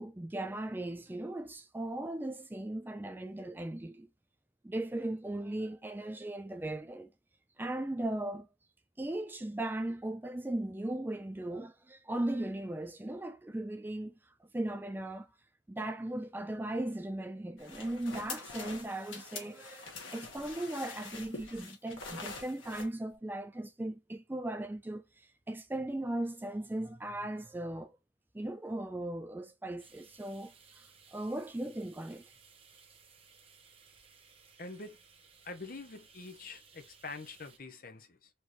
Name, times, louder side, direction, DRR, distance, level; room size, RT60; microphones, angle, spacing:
voice 1, 0.0-4.1 4.6-7.1 7.6-8.5 9.0-15.3 15.7-28.0 28.3-30.8 31.1-32.3, right 1 dB, 10° right, 0.3 m, -38 dB
sound 1, 17.6-22.9, left 4 dB, 85° left, 1.7 m, -45 dB
sound 2, 29.8-37.6, right 5 dB, 30° right, 1.0 m, -60 dB
voice 2, 34.6-35.0 35.4-38.3, left 3 dB, 45° left, 0.9 m, -45 dB
4.4 x 3.0 x 3.0 m
head